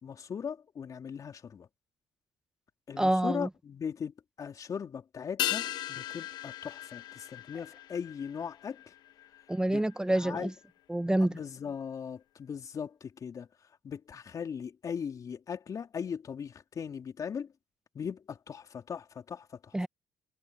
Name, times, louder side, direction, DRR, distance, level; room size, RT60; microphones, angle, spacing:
voice 1, 0.0-1.7 2.9-8.8 9.7-9.8 10.2-10.5 11.3-13.5 13.8-17.5 18.0-19.7, left 7 dB, 50° left, 3.6 m, -39 dB
voice 2, 3.0-3.5 9.5-10.5 10.9-11.4 19.7-19.9, right 1 dB, 10° right, 1.3 m, -27 dB
sound 1, 5.4-10.1 10.4-10.5, left 14 dB, 70° left, 1.1 m, -38 dB
supercardioid pair, 65°, 8 cm